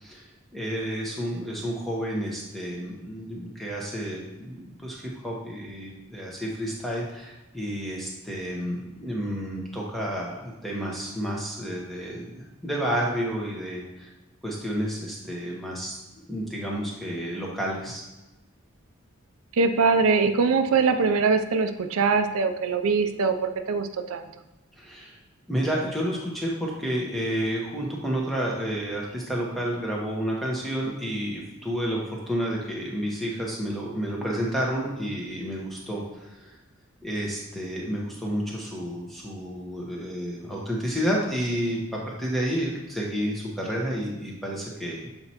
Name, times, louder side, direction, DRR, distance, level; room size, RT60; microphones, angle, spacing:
voice 1, 0.5-14.1 14.4-16.0 16.3-18.0 24.8-25.1 25.5-36.5 37.0-41.8 42.2-45.1, equal, ahead, -4 dB, 1.0 m, -30 dB
voice 2, 19.6-24.2, right 4 dB, 80° right, 7 dB, 0.5 m, -22 dB
7.6 x 4.3 x 2.9 m, 1.1 s
head